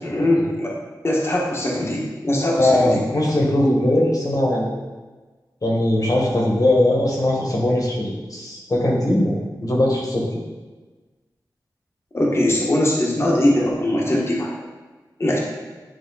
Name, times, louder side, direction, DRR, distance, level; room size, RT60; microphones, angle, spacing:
voice 1, 0.0-0.7 1.0-3.0 12.1-14.5 15.2-15.4, left 1 dB, 35° left, -3 dB, 1.5 m, -21 dB
voice 2, 2.6-4.7 5.6-10.2, left 1 dB, 50° left, -2 dB, 1.8 m, -20 dB
9.7 x 3.3 x 4.2 m, 1.3 s
wide cardioid pair, 75°, 8 cm